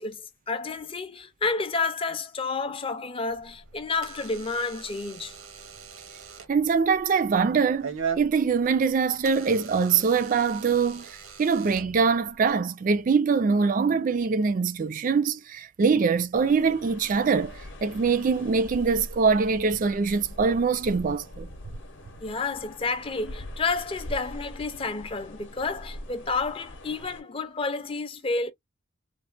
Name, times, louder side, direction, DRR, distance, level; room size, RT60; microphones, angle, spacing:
voice 1, 0.0-5.4 22.2-28.5, left 4 dB, 25° left, 0.5 m, -30 dB
Door / Alarm, 3.3-12.5, right 6 dB, 75° right, 0.8 m, -40 dB
voice 2, 6.5-21.5, right 5 dB, 40° right, 0.3 m, -23 dB
sound 1, 16.3-27.2, left 1 dB, 60° left, 0.8 m, -43 dB
3.2 x 2.1 x 2.4 m
head